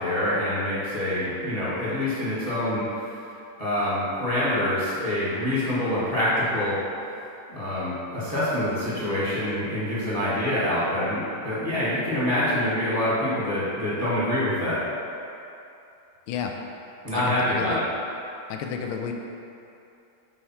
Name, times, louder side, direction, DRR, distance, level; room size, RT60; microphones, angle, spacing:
voice 1, 0.0-2.8 3.6-6.7 7.5-14.8 17.0-17.8, left 1 dB, 25° left, -10 dB, 1.0 m, -26 dB
voice 2, 17.1-17.8 18.5-19.1, left 6 dB, 80° left, 3 dB, 1.4 m, -31 dB
5.6 x 3.2 x 5.6 m, 2.7 s
omnidirectional pair, 2.3 m